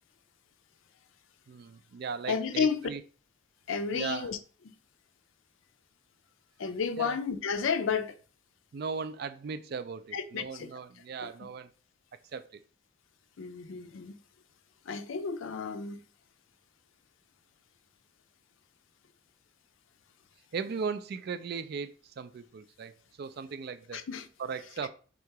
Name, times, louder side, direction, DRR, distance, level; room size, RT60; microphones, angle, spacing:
voice 1, 1.5-3.0 3.9-4.3 7.0-7.2 8.7-11.7 12.3-12.6 20.5-24.1 24.4-24.9, right 5 dB, 50° right, 0.3 m, -37 dB
voice 2, 2.3-2.9 3.7-4.4 4.7-4.8 6.6-8.2 10.1-10.7 11.2-11.3 13.4-14.1 14.9-16.0 23.9-24.3, left 6 dB, 75° left, 0.5 m, -32 dB
3.6 x 2.8 x 4.5 m
head